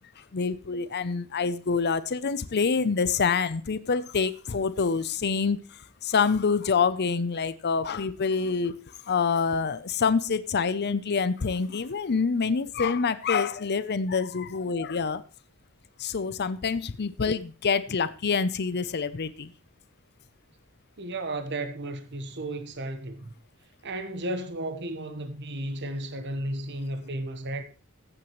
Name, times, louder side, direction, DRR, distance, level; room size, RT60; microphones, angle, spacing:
voice 1, 0.3-8.7 9.0-15.2 16.0-19.5, left 5 dB, 50° left, 0.6 m, -26 dB
voice 2, 21.0-23.3 23.8-27.6, right 1 dB, 55° right, 1.2 m, -34 dB
15.0 x 8.9 x 3.1 m
head